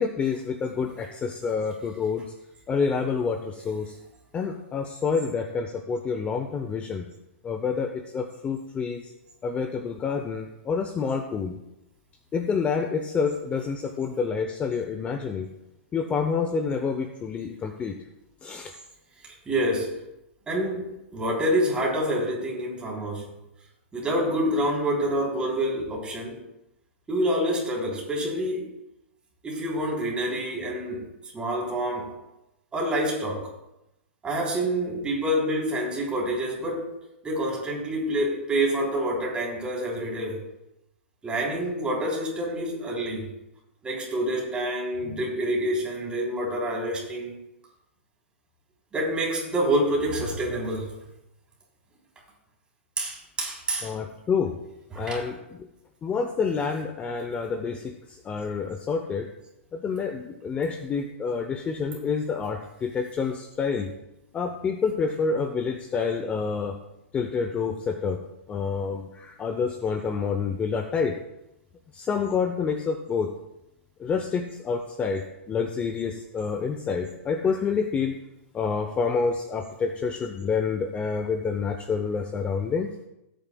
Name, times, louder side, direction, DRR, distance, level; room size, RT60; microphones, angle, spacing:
voice 1, 0.0-2.2 2.7-4.0 4.3-7.1 7.4-9.1 9.4-11.6 12.3-15.5 15.9-18.0 18.4-18.7 53.8-54.6 55.0-55.7 56.0-59.3 59.7-63.9 64.3-66.8 67.1-68.2 68.5-71.1 71.9-73.3 74.0-78.1 78.5-82.9, left 5 dB, 20° left, 6 dB, 0.7 m, -28 dB
voice 2, 19.2-19.9 20.5-23.2 23.9-26.4 27.1-28.7 29.4-31.0 31.3-32.1 32.7-33.5 34.2-36.8 37.2-40.4 41.2-43.2 43.8-47.3 48.9-50.9 53.0-53.9 54.9-55.2, right 1 dB, 15° right, -3 dB, 3.4 m, -27 dB
18.0 x 9.0 x 2.3 m, 0.89 s
hypercardioid pair, 135°, 7 cm